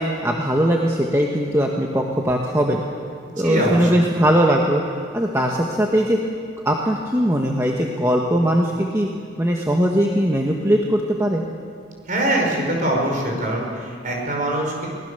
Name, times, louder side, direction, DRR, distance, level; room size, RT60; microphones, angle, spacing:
voice 1, 0.0-2.8 3.4-4.8 5.1-6.2 6.6-9.1 9.4-11.4, equal, 15° right, 0 dB, 1.2 m, -20 dB
voice 2, 3.4-4.0 12.1-14.9, right 1 dB, 40° right, 0 dB, 5.0 m, -23 dB
23.0 x 18.5 x 6.8 m, 2.1 s
head